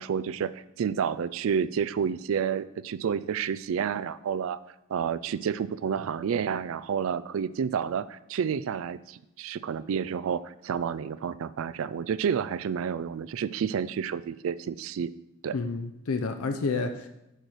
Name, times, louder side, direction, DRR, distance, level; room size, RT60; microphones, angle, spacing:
voice 1, 0.0-4.6 4.9-15.1 15.4-15.5, right 7 dB, 65° right, 17 dB, 0.3 m, -30 dB
voice 2, 15.5-17.1, left 4 dB, 85° left, 7 dB, 0.5 m, -30 dB
6.6 x 4.9 x 6.1 m, 0.87 s
head